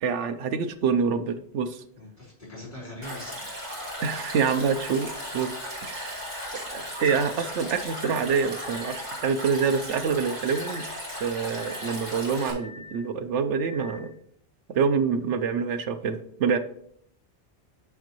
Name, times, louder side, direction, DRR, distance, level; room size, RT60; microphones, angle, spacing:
voice 1, 0.0-1.8 4.0-5.5 5.8-6.3 6.7-10.8 11.2-14.1 14.7-16.6, right 6 dB, 85° right, 10 dB, 1.0 m, -26 dB
voice 2, 2.0-3.6, left 1 dB, 40° left, -6 dB, 3.4 m, -42 dB
Stream, 3.0-12.5, equal, 40° right, 2.6 m, -36 dB
sound 1, 8.6-9.2 10.4-11.0 11.5-12.0 12.6-13.1 13.6-14.1, left 3 dB, 25° right, 2.4 m, -46 dB
8.1 x 6.2 x 3.0 m, 0.67 s
omnidirectional pair, 1.2 m